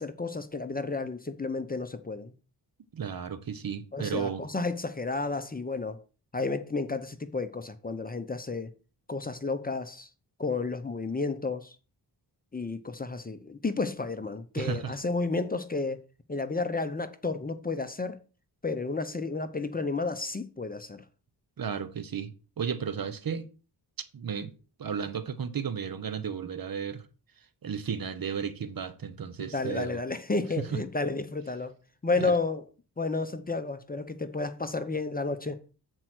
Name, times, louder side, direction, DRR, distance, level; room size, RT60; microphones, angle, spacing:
voice 1, 0.0-2.3 3.9-6.0 6.3-8.7 9.1-10.1 10.4-11.8 12.5-16.0 16.3-18.2 18.6-21.0 29.4-31.7 32.0-32.6 33.0-35.6, left 3 dB, 20° left, 0.7 m, -32 dB
voice 2, 2.9-4.4 14.6-15.0 21.6-22.3 22.6-23.5 24.1-24.5 24.8-27.0 27.6-30.0 30.6-30.8 32.2-32.4, right 7 dB, 55° right, 1.0 m, -33 dB
7.7 x 4.5 x 6.1 m
wide cardioid pair, 100°, 41 cm